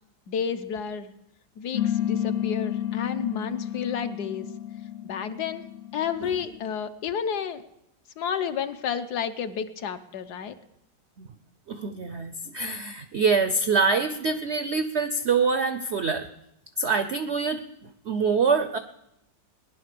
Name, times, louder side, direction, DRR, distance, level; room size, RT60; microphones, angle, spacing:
voice 1, 0.3-1.1 1.6-4.5 5.0-5.6 5.9-7.6 8.2-10.6, left 7 dB, 65° left, 9 dB, 1.3 m, -31 dB
sound 1, 1.7-6.7, left 11 dB, 85° left, 0.4 m, -31 dB
voice 2, 11.7-16.3 16.8-17.6 18.1-18.8, right 5 dB, 70° right, 9 dB, 0.6 m, -25 dB
18.0 x 10.5 x 6.8 m, 0.83 s
omnidirectional pair, 2.0 m